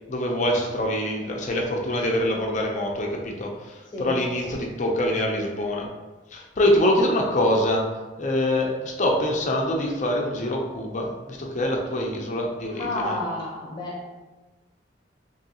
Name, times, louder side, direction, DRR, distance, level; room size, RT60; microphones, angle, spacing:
voice 1, 0.1-5.9 6.3-7.8 8.2-13.2, left 1 dB, 40° left, 0 dB, 0.6 m, -25 dB
voice 2, 12.7-14.1, left 2 dB, 25° left, -4 dB, 0.9 m, -30 dB
3.6 x 3.0 x 2.8 m, 1.2 s
head